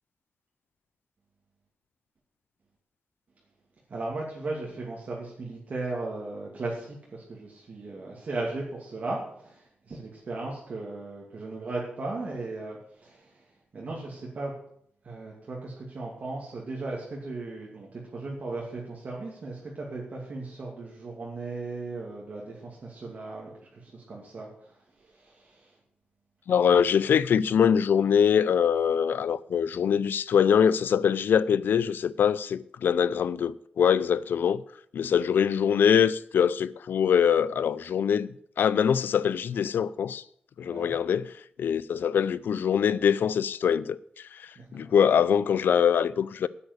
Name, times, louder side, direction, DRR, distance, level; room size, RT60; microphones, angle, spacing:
voice 1, 3.9-14.5 15.0-25.8 40.6-40.9 44.6-44.9, right 2 dB, 50° right, 2.6 m, -37 dB
voice 2, 26.5-34.6 34.9-40.2 40.6-46.5, left 8 dB, 85° left, 0.5 m, -23 dB
9.7 x 8.6 x 8.1 m
wide cardioid pair, 140°, 3 cm